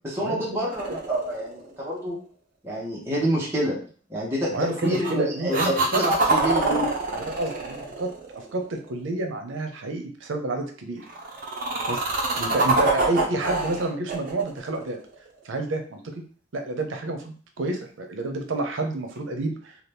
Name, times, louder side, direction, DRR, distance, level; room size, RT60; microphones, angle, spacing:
voice 1, 0.0-2.1 2.6-3.7 4.1-6.9, equal, 15° right, -7 dB, 1.0 m, -27 dB
sound 1, 0.7-1.9 4.6-5.1 5.5-8.8 11.0-15.4 19.2-19.3, right 2 dB, 45° right, 0.6 m, -26 dB
voice 2, 4.5-6.0 7.1-11.0 11.9-12.0 12.3-15.0 15.4-16.0 16.5-19.8, right 2 dB, 90° right, 5 dB, 0.6 m, -29 dB
2.9 x 2.3 x 3.3 m, 0.43 s
head